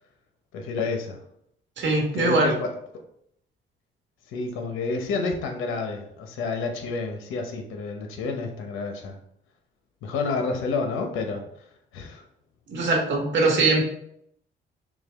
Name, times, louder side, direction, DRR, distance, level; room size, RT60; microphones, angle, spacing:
voice 1, 0.5-1.2 2.1-2.7 4.3-9.2 10.0-11.4 11.9-12.2, left 4 dB, 85° left, 4 dB, 0.8 m, -29 dB
voice 2, 1.8-2.5 12.7-13.8, right 2 dB, 70° right, 0 dB, 1.5 m, -21 dB
5.9 x 2.3 x 3.4 m, 0.71 s
cardioid pair, 90°, 20 cm